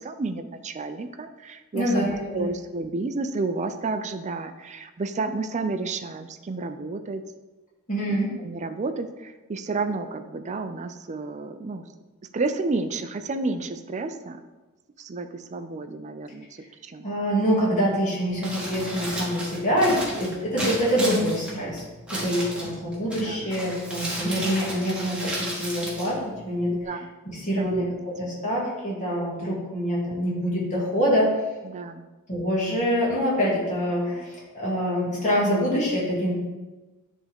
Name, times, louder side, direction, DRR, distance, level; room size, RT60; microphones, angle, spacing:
voice 1, 0.0-2.1 2.3-7.2 8.1-11.9 12.3-14.4 15.0-16.5 16.8-17.1 23.2-23.5 26.7-27.1 27.6-28.0 28.3-28.4 31.6-32.0, right 3 dB, 35° right, 9 dB, 0.4 m, -31 dB
voice 2, 1.7-2.5 7.9-8.3 17.0-21.8 22.1-26.7 27.3-27.9 28.2-31.4 32.3-36.3, equal, 35° left, -6 dB, 2.3 m, -25 dB
Crumpling crinkling, 18.3-26.8, right 1 dB, 5° right, 1.5 m, -34 dB
10.5 x 3.6 x 3.5 m, 1.2 s
head